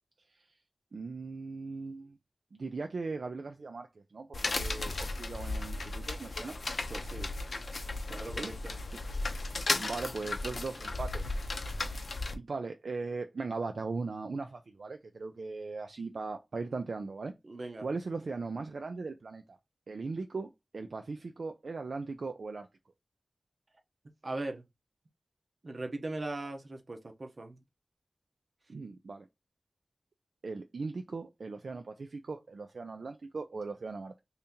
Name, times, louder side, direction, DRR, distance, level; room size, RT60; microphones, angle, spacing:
voice 1, 0.9-2.2 2.5-3.9 4.1-6.6 8.4-8.5 8.9-9.1 9.8-11.2 12.3-17.3 17.8-19.6 19.9-22.7 28.7-29.3 30.4-34.2, right 4 dB, 80° right, 0.3 m, -39 dB
sound 1, 4.3-12.3, left 2 dB, 70° left, 0.5 m, -35 dB
voice 2, 6.9-7.3 8.1-8.8 17.4-17.9 24.2-24.6 25.6-27.6, right 2 dB, 55° right, 0.7 m, -39 dB
2.8 x 2.7 x 3.5 m
wide cardioid pair, 70°, 0 cm